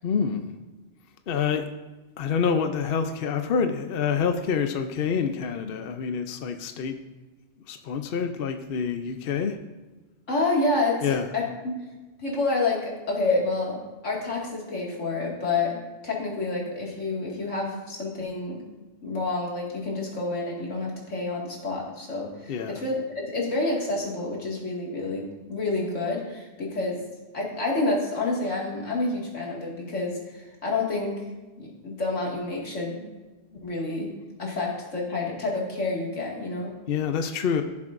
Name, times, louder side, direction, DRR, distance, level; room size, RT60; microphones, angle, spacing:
voice 1, 0.0-0.5 1.3-1.7 2.2-7.0 7.7-9.6 11.0-11.2 22.5-22.8 36.9-37.6, left 6 dB, 55° left, 7 dB, 0.8 m, -27 dB
voice 2, 10.3-11.7 12.2-12.8 13.1-18.6 19.0-27.0 27.3-31.1 31.6-33.0 33.6-34.1 34.4-36.7, left 3 dB, 90° left, -3 dB, 2.5 m, -28 dB
16.0 x 7.2 x 2.6 m, 1.2 s
omnidirectional pair, 1.2 m